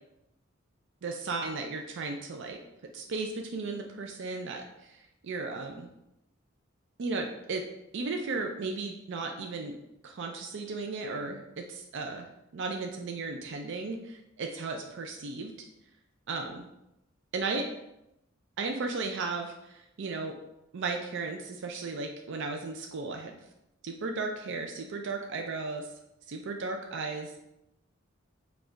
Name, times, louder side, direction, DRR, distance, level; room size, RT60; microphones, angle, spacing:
voice 1, 1.0-2.6 2.9-5.0 5.2-5.9 7.0-7.6 7.9-9.7 10.0-12.3 12.5-15.5 16.3-16.6 17.3-17.7 18.6-20.3 20.7-23.3 23.8-25.9 26.3-27.4, right 3 dB, 65° right, 3 dB, 0.4 m, -35 dB
5.0 x 2.4 x 3.7 m, 0.85 s
head